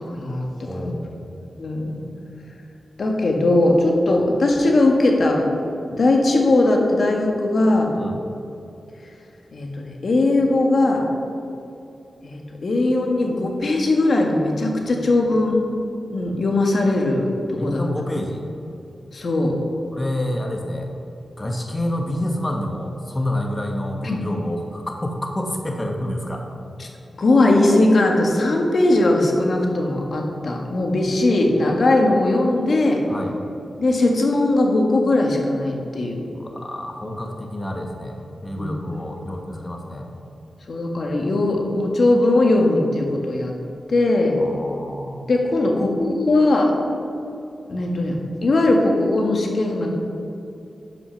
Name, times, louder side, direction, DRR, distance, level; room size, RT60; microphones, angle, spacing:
voice 1, 0.1-0.8 1.6-2.1 3.0-5.5 5.9-7.9 9.5-11.1 12.2-15.6 16.1-17.8 19.1-19.5 24.0-24.3 26.8-26.9 27.2-33.0 33.8-36.2 38.6-38.7 40.7-43.5 43.9-44.4 45.3-46.8 47.7-49.9, left 2 dB, 60° left, 1 dB, 1.6 m, -19 dB
voice 2, 0.6-1.3 8.0-8.3 17.6-18.4 19.9-20.9 21.4-26.4 33.1-33.3 36.3-40.1 44.4-45.3, left 1 dB, 25° left, 2 dB, 1.1 m, -28 dB
10.5 x 6.0 x 5.8 m, 2.8 s
cardioid pair, 75°, 0 cm